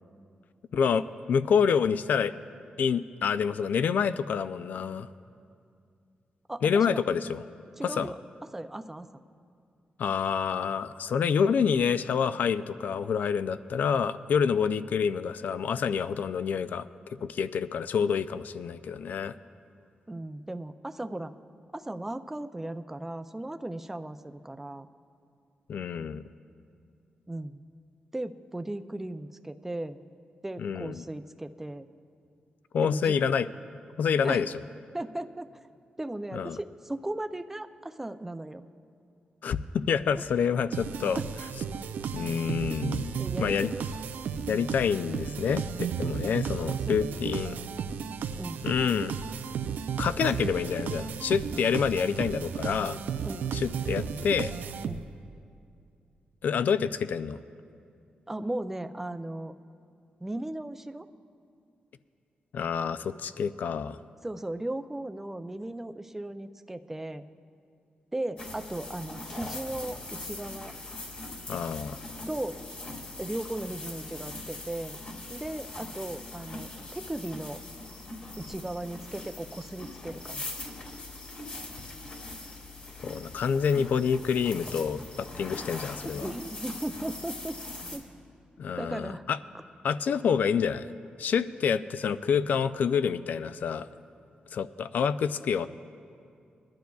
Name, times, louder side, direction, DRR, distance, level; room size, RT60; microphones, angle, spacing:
voice 1, 0.7-2.3 2.8-5.1 6.6-7.4 7.8-8.1 10.0-16.9 17.2-19.3 25.7-26.2 30.6-31.0 32.7-33.5 34.0-34.5 36.3-36.6 39.4-41.2 42.1-43.7 44.5-45.7 46.0-47.6 48.6-49.2 50.0-53.0 53.5-54.5 56.4-57.4 62.5-64.0 71.5-72.0 83.0-86.3 88.6-89.4 89.8-90.9 91.2-93.9 94.5-95.7, left 7 dB, 70° left, 13 dB, 0.3 m, -27 dB
voice 2, 6.5-7.0 7.8-8.2 8.5-9.1 20.1-21.3 21.7-24.9 27.3-27.6 28.1-30.0 30.4-31.9 32.8-33.2 34.2-34.5 34.9-35.5 36.0-38.7 41.2-41.3 43.2-43.8 46.9-47.1 48.4-48.7 53.2-53.5 54.8-55.0 58.3-59.5 60.2-61.1 64.2-67.2 68.1-70.7 72.3-72.6 73.2-75.0 75.3-77.6 78.4-80.5 86.1-87.6 87.9-88.1 88.8-89.2, right 1 dB, 10° right, 9 dB, 0.4 m, -36 dB
sound 1, 40.7-55.3, right 7 dB, 90° right, 0.4 m, -34 dB
sound 2, 68.4-88.0, left 2 dB, 50° left, 2.0 m, -41 dB
21.5 x 11.5 x 2.3 m, 2.5 s
wide cardioid pair, 115°, 3 cm